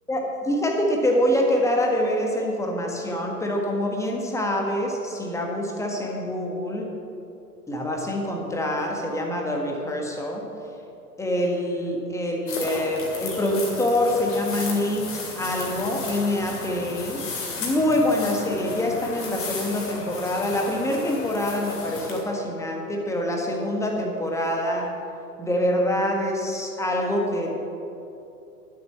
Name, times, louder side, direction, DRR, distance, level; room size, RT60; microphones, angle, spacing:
voice 1, 0.1-6.9 7.7-10.4 11.2-15.1 15.4-17.2 17.6-24.9 25.4-27.5, left 1 dB, 5° left, 0 dB, 1.5 m, -25 dB
sound 1, 12.5-22.2, left 4 dB, 25° left, 2.4 m, -35 dB
12.0 x 7.8 x 5.7 m, 2.8 s
figure-of-eight pair, 100°, 47 cm